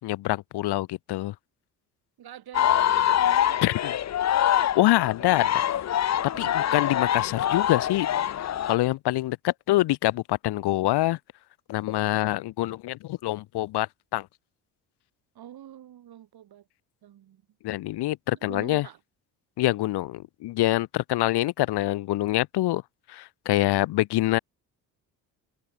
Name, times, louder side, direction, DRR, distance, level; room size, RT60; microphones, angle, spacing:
voice 1, 0.0-1.3 3.6-3.9 4.7-5.5 6.4-8.1 8.4-11.2 11.7-14.3 17.6-18.9 19.6-22.8 23.1-24.4, left 16 dB, 70° left, 1.0 m, -25 dB
voice 2, 2.2-3.9 4.4-4.8 5.2-5.3 6.3-6.7 15.3-16.7 17.0-17.4 18.3-19.0, right 11 dB, 60° right, 3.1 m, -46 dB
sound 1, 2.5-8.8, left 10 dB, 40° left, 0.7 m, -24 dB
supercardioid pair, 75°, 41 cm